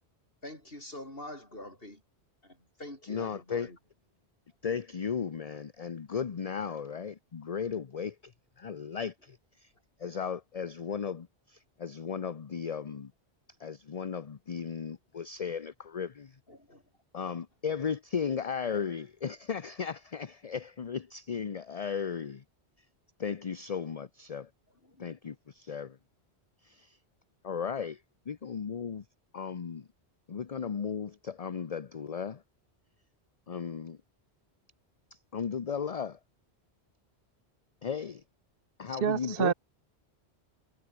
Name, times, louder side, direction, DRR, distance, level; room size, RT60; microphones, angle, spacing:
voice 1, 0.4-2.0 2.4-3.8 16.5-16.8 24.8-25.1, left 1 dB, 55° left, 6.9 m, -45 dB
voice 2, 3.1-3.7 4.6-9.7 10.0-13.1 13.6-16.4 17.1-22.4 23.2-24.5 25.0-26.0 26.6-27.0 27.4-29.0 29.3-29.9 30.3-32.4 33.5-34.0 35.1-36.2 37.8-38.2 38.8-39.5, left 6 dB, 40° left, 0.7 m, -36 dB
voice 3, 38.9-39.5, right 8 dB, 60° right, 0.9 m, -28 dB
omnidirectional pair, 1.1 m